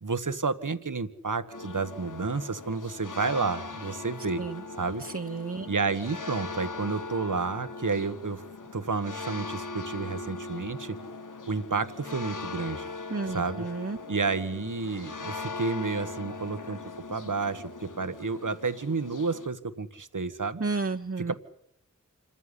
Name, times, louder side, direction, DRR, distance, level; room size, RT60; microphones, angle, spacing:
voice 1, 0.0-4.4 4.8-5.0 5.7-8.4 8.7-11.0 11.5-12.9 13.3-13.7 14.1-16.8 17.1-20.6 21.3-21.4, right 4 dB, 85° right, 12 dB, 1.4 m, -30 dB
sound 1, 1.5-19.5, left 4 dB, 85° left, 1.2 m, -40 dB
voice 2, 5.0-5.7 13.1-14.0 20.6-21.3, right 4 dB, 45° right, 5 dB, 1.0 m, -32 dB
27.0 x 14.5 x 9.9 m, 0.71 s
wide cardioid pair, 45°, 30 cm